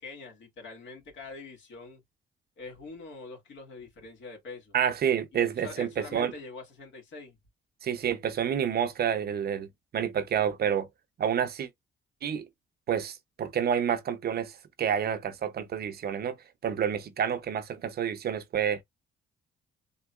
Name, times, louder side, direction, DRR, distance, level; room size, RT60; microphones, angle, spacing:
voice 1, 0.0-2.0 2.6-4.8 5.3-7.4, left 4 dB, 70° left, 1.9 m, -44 dB
voice 2, 4.7-6.3 7.8-10.9 11.2-11.7 12.2-12.4 12.9-16.4 16.6-18.8, right 8 dB, 55° right, 0.6 m, -29 dB
3.6 x 2.8 x 2.3 m
cardioid pair, 90°, 20 cm